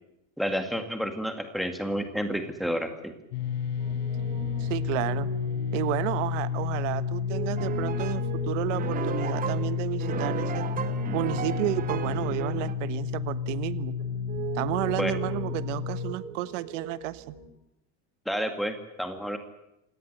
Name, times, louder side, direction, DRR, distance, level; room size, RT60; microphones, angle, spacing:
voice 1, 0.4-3.1 15.0-15.3 18.3-19.4, equal, ahead, 6 dB, 2.0 m, -30 dB
sound 1, 3.3-16.1, left 7 dB, 65° left, 5.4 m, -31 dB
Piano, 3.8-17.5, right 4 dB, 40° right, 4.4 m, -41 dB
voice 2, 4.6-5.3 5.7-10.7 11.1-14.0 14.5-17.4, right 16 dB, 75° right, 15 dB, 1.4 m, -31 dB
sound 2, 7.6-8.3 8.7-12.7, right 8 dB, 20° right, 1.2 m, -34 dB
27.0 x 18.0 x 8.1 m, 0.86 s
cardioid pair, 180°, 37 cm